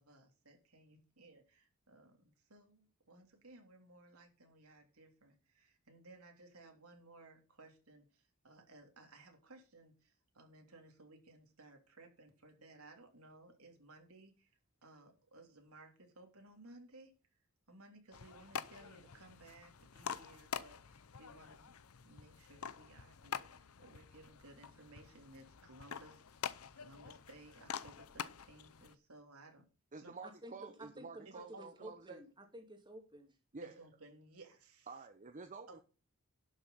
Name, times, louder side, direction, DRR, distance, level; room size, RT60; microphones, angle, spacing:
voice 1, 0.0-14.5 14.8-17.1 17.7-21.7 22.0-29.6 30.0-30.2 31.2-31.9 33.6-34.9 35.7-35.8, right 2 dB, 80° right, 3.2 m, -59 dB
sound 1, 18.1-28.9, left 7 dB, 85° left, 0.7 m, -47 dB
voice 2, 29.9-32.2 33.5-33.8 34.9-35.8, right 4 dB, 35° right, 0.9 m, -50 dB
voice 3, 30.4-33.3, right 1 dB, 20° right, 2.5 m, -52 dB
11.5 x 6.7 x 5.6 m
head